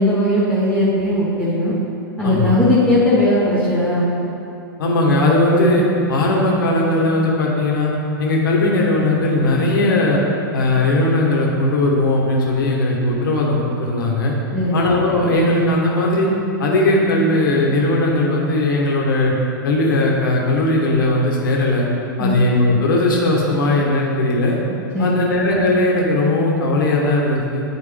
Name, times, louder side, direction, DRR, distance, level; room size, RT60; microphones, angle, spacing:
voice 1, 0.0-1.7 2.2-4.0 14.5-14.9 22.2-22.4 24.9-25.3, left 1 dB, 10° left, -11 dB, 1.6 m, -18 dB
voice 2, 2.2-2.5 4.8-5.8 6.1-7.9 8.2-10.2 10.5-14.3 14.7-16.3 16.6-19.3 19.6-21.8 22.2-24.6 25.0-27.6, left 2 dB, 70° left, -2 dB, 1.3 m, -18 dB
9.0 x 4.4 x 3.5 m, 2.7 s
hypercardioid pair, 100°, 12 cm